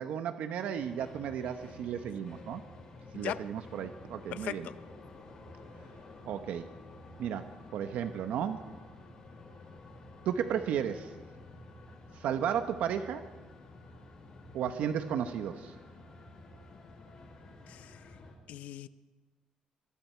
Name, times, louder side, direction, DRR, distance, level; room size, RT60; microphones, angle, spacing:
voice 1, 0.0-2.6 3.1-4.7 6.3-6.7 7.2-8.6 10.2-11.1 12.1-13.3 14.5-15.8, right 8 dB, 80° right, 1.1 m, -34 dB
sound 1, 0.8-18.3, left 2 dB, 35° left, 5.6 m, -51 dB
voice 2, 3.1-3.5 4.3-4.8 17.7-18.2 18.5-18.9, left 12 dB, 80° left, 0.7 m, -39 dB
26.0 x 24.0 x 4.6 m
cardioid pair, 175°, 2 cm